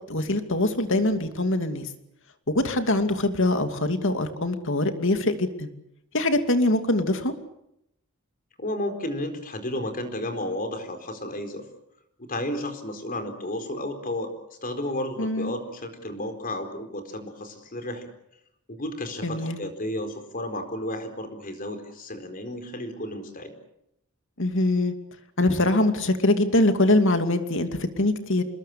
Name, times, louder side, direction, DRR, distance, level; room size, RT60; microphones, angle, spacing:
voice 1, 0.1-1.9 2.5-5.7 6.1-7.3 15.2-15.5 19.2-19.6 24.4-24.9 25.4-28.4, left 2 dB, 60° left, 7 dB, 2.7 m, -23 dB
voice 2, 8.6-11.7 12.2-14.3 14.6-18.1 18.7-23.5, left 1 dB, 40° left, 7 dB, 4.4 m, -32 dB
27.5 x 21.0 x 8.4 m, 0.80 s
head